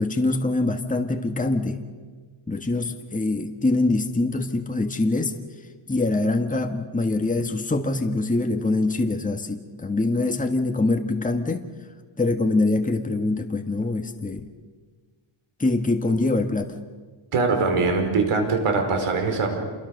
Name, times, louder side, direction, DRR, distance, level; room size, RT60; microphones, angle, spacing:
voice 1, 0.0-1.8 2.5-5.3 5.9-11.6 12.2-14.5 15.6-16.7, left 2 dB, 15° left, 5 dB, 1.7 m, -24 dB
voice 2, 17.3-19.5, right 4 dB, 85° right, 5 dB, 4.9 m, -22 dB
28.0 x 22.0 x 6.7 m, 1.5 s
cardioid pair, 90°, 50 cm